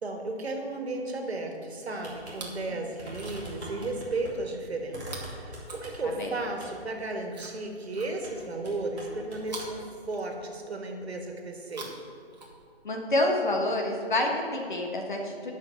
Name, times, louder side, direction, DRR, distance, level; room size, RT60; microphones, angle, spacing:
voice 1, 0.0-11.9, right 2 dB, 70° right, 3 dB, 1.8 m, -34 dB
sound 1, 2.0-2.4 2.6-2.7 3.0-4.3 4.9-6.2 6.6-6.8 8.2-8.4 8.6-9.7, right 1 dB, ahead, 0.9 m, -42 dB
Chewing mastication, 2.2-2.7 3.0-3.7 5.0-6.4 7.3-8.5 9.4-10.7 11.6-13.0 13.9-14.0, right 3 dB, 40° right, 1.5 m, -46 dB
voice 2, 12.8-15.5, left 1 dB, 45° left, 1 dB, 1.6 m, -28 dB
9.7 x 5.8 x 7.1 m, 2.3 s
hypercardioid pair, 180°, 33 cm